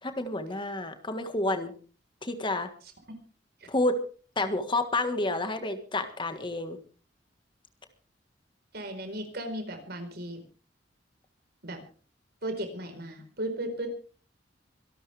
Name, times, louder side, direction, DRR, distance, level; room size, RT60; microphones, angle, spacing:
voice 1, 0.0-1.7 2.2-2.7 3.7-4.0 4.3-6.8, left 2 dB, 25° left, 8 dB, 1.6 m, -29 dB
voice 2, 8.7-10.4 11.6-11.8 12.4-13.9, right 1 dB, 60° right, 6 dB, 4.5 m, -35 dB
25.0 x 12.5 x 3.4 m, 0.39 s
head